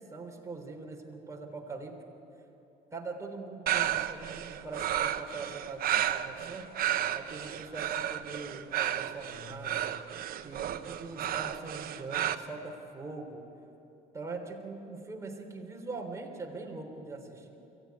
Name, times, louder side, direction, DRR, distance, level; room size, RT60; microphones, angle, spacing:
voice 1, 0.0-1.9 2.9-6.7 7.1-9.9 10.4-13.4 14.1-17.6, right 3 dB, 20° right, 1 dB, 3.7 m, -42 dB
sound 1, 3.7-12.3, right 11 dB, 60° right, 0.9 m, -32 dB
23.5 x 16.5 x 9.5 m, 2.9 s
cardioid pair, 110°, 17 cm